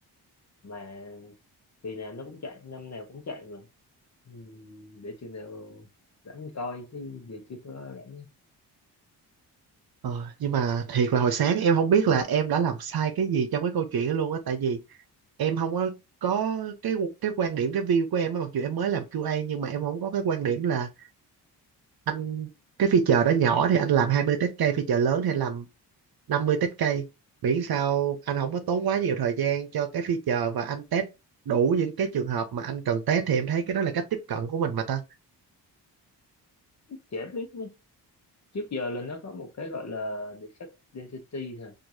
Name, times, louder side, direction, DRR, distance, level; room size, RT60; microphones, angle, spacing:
voice 1, 0.6-1.4 1.8-3.7 4.2-5.9 6.2-8.3 36.9-37.7 38.5-41.7, left 2 dB, 40° left, 1.0 m, -38 dB
voice 2, 10.0-14.8 15.4-20.9 22.1-22.5 22.8-25.7 26.3-27.1 27.4-31.1 31.5-35.0, right 7 dB, 60° right, 0.8 m, -25 dB
4.5 x 2.7 x 2.7 m
cardioid pair, 80°, 41 cm